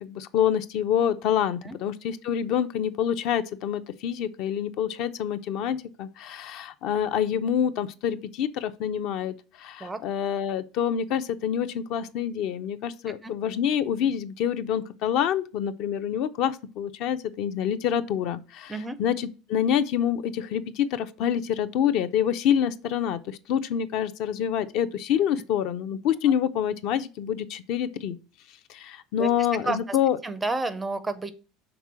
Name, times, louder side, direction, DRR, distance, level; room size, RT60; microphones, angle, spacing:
voice 1, 0.0-18.7 19.0-28.2 28.7-30.2, left 9 dB, 45° left, 0.5 m, -27 dB
voice 2, 29.6-30.0 30.2-31.3, right 3 dB, 10° right, 0.4 m, -30 dB
6.0 x 3.7 x 6.0 m
cardioid pair, 175°, 0 cm